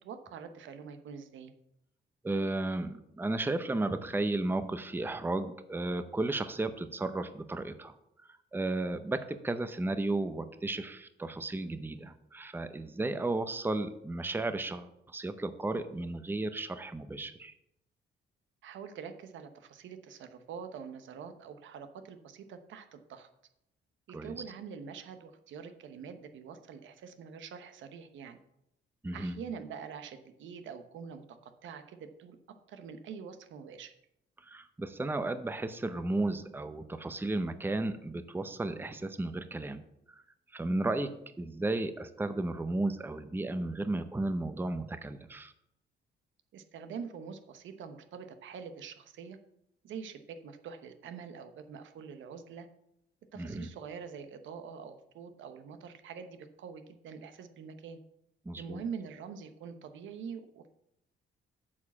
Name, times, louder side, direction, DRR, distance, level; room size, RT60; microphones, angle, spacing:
voice 1, 0.0-1.5 18.6-23.3 24.1-28.4 29.1-32.4 32.7-33.9 46.5-49.4 49.8-52.7 53.3-58.0 58.6-60.7, right 6 dB, 75° right, 9 dB, 0.9 m, -45 dB
voice 2, 2.2-7.9 8.5-17.5 24.1-24.3 29.0-29.3 34.4-39.8 40.1-40.2 40.5-41.1 41.4-45.5 53.4-53.7 58.5-58.8, right 2 dB, 10° right, 10 dB, 0.7 m, -34 dB
8.5 x 4.9 x 7.2 m, 0.81 s
cardioid pair, 90°, 20 cm